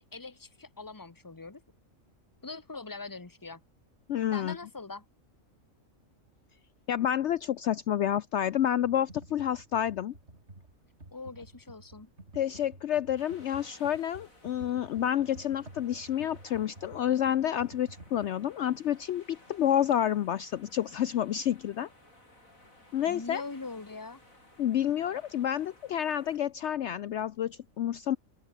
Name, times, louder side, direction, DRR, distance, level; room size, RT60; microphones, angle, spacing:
voice 1, 0.0-1.6 2.4-3.6 4.3-5.0 11.1-12.1 23.0-24.2, left 3 dB, 15° left, 1.3 m, -42 dB
voice 2, 4.1-4.5 6.9-10.1 12.3-21.9 22.9-23.4 24.6-28.2, left 10 dB, 65° left, 0.9 m, -29 dB
Computer keyboard, 8.8-18.3, right 2 dB, 55° right, 4.6 m, -51 dB
sound 1, 13.2-26.4, left 2 dB, 90° left, 7.8 m, -59 dB
open air
omnidirectional pair, 1.4 m